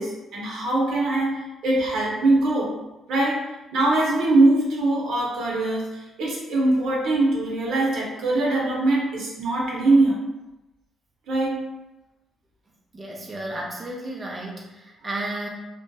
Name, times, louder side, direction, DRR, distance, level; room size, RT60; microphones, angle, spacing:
voice 1, 0.0-10.2 11.3-11.7, right 2 dB, 80° right, -4 dB, 0.7 m, -22 dB
voice 2, 12.9-15.5, right 1 dB, 25° right, -1 dB, 0.4 m, -33 dB
2.6 x 2.1 x 2.3 m, 1.0 s
cardioid pair, 90°, 0 cm